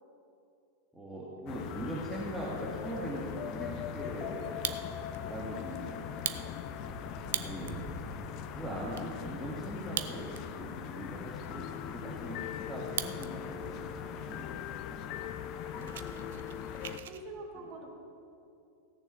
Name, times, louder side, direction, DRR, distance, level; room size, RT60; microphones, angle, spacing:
voice 1, 0.9-4.6 5.1-6.5 7.4-7.8 8.5-14.6 17.6-17.7, right 1 dB, ahead, -7 dB, 2.2 m, -41 dB
sound 1, 1.5-17.0, left 9 dB, 40° left, 0.7 m, -40 dB
Fire, 4.4-5.2 5.6-5.7 6.1-7.8 8.3-8.4 8.6-9.1 9.8-10.6 10.9-11.0 11.6-13.3 13.6-14.1 14.6-14.7 15.0-15.2 15.5-17.2, right 11 dB, 55° right, 0.6 m, -39 dB
voice 2, 5.4-6.2 7.3-7.8 14.9-17.9, right 2 dB, 35° right, 1 dB, 2.1 m, -49 dB
sound 2, 6.8-14.7, right 3 dB, 20° right, 1.2 m, -51 dB
16.5 x 7.0 x 7.1 m, 2.6 s
figure-of-eight pair, 90°, 0 cm